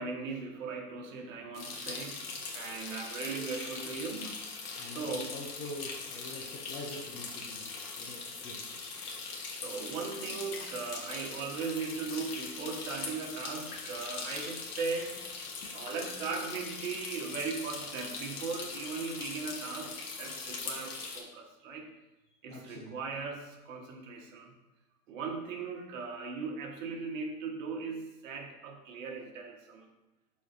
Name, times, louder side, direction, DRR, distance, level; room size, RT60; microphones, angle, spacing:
voice 1, 0.0-4.5 4.8-5.3 9.5-15.2 15.7-21.9 22.4-24.5 25.1-29.9, right 4 dB, 55° right, 2 dB, 1.5 m, -38 dB
sound 1, 1.5-21.2, left 4 dB, 65° left, 1.6 m, -41 dB
voice 2, 4.7-7.6 8.0-8.6 22.5-23.0, left 2 dB, 15° left, -2 dB, 0.5 m, -45 dB
11.5 x 4.3 x 2.7 m, 1.0 s
hypercardioid pair, 115°, 48 cm